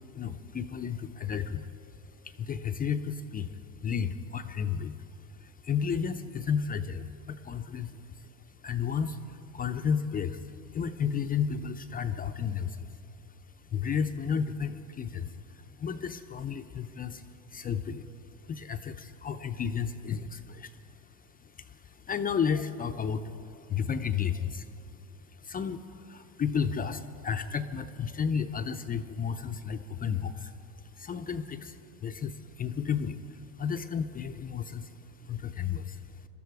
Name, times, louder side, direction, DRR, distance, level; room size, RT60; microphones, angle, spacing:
voice 1, 0.1-1.7 2.2-5.0 5.3-8.3 8.6-13.0 13.7-18.1 18.5-20.8 21.4-24.7 25.3-30.5 30.9-34.9 35.2-36.1, left 7 dB, 20° left, 8 dB, 0.4 m, -33 dB
22.0 x 13.0 x 4.7 m, 2.7 s
supercardioid pair, 110°, 44 cm